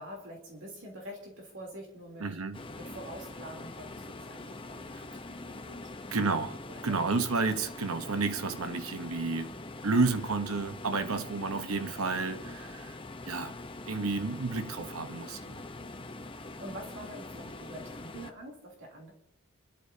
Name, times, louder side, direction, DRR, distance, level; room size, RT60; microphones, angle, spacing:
voice 1, 0.0-2.4 2.8-6.2 6.7-7.2 11.0-11.3 15.8-19.1, right 1 dB, 60° right, 3.4 m, -46 dB
voice 2, 2.2-2.6 4.9-5.0 6.1-9.6 9.8-13.0 13.3-13.5 13.8-15.6, right 3 dB, 80° right, 1.1 m, -31 dB
sound 1, 2.5-18.3, left 2 dB, 25° left, 0.8 m, -44 dB
29.5 x 13.5 x 2.8 m
head